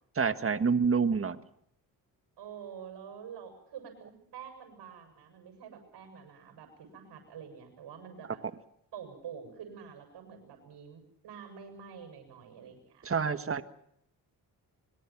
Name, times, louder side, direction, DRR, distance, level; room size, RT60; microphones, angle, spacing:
voice 1, 0.1-1.4 13.0-13.6, right 5 dB, 30° right, 11 dB, 1.6 m, -27 dB
voice 2, 2.4-8.4 8.9-13.6, right 7 dB, 75° right, 5 dB, 7.8 m, -47 dB
25.0 x 22.5 x 6.1 m, 0.72 s
cardioid pair, 75°, 41 cm